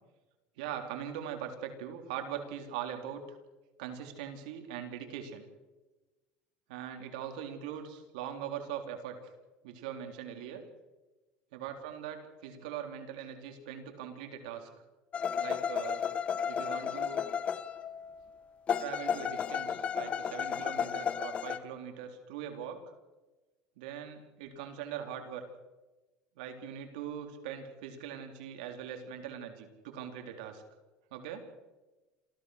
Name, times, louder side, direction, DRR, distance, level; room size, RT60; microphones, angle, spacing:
voice 1, 0.6-3.2 3.8-5.4 6.7-9.2 9.6-10.6 11.5-14.7 15.4-16.0 16.5-17.2 18.8-22.8 23.8-25.4 26.4-30.6 31.1-31.4, right 9 dB, 85° right, 5 dB, 3.7 m, -41 dB
sound 1, 15.1-18.1 18.7-21.6, left 7 dB, 30° left, 1.1 m, -33 dB
27.5 x 15.5 x 6.6 m, 1.1 s
supercardioid pair, 135°, 4 cm